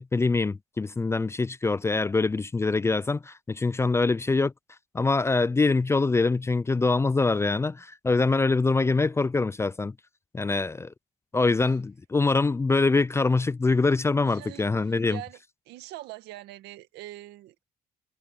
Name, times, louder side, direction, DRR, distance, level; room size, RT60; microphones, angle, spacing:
voice 1, 0.0-4.5 4.9-9.9 10.3-10.9 11.3-15.2, left 3 dB, 15° left, 0.4 m, -24 dB
voice 2, 14.2-15.4 15.7-17.6, right 15 dB, 85° right, 2.1 m, -43 dB
cardioid pair, 110°, 17 cm